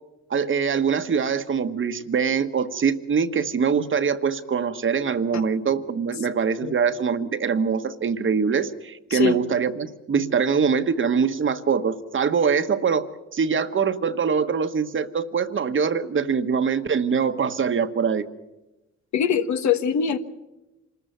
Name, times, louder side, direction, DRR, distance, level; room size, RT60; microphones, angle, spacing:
voice 1, 0.3-13.1 13.3-18.3, right 6 dB, 40° right, 10 dB, 1.3 m, -23 dB
voice 2, 19.1-20.2, left 7 dB, 65° left, 9 dB, 1.5 m, -22 dB
25.5 x 14.0 x 9.3 m, 1.0 s
cardioid pair, 90°, 30 cm